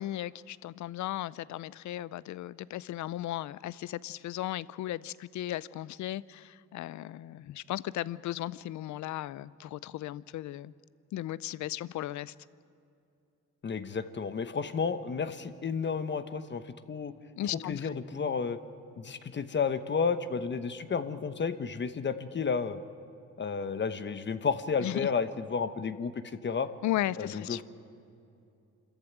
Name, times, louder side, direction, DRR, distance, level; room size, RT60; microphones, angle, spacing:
voice 1, 0.0-10.7 11.1-12.3 17.4-17.9 24.8-25.1 26.8-27.6, left 14 dB, 70° left, 19 dB, 0.6 m, -36 dB
voice 2, 13.6-17.1 17.7-18.6 19.0-22.8 23.4-26.7 27.2-27.6, left 5 dB, 40° left, 11 dB, 1.1 m, -32 dB
26.0 x 14.0 x 9.0 m, 2.6 s
cardioid pair, 90°, 30 cm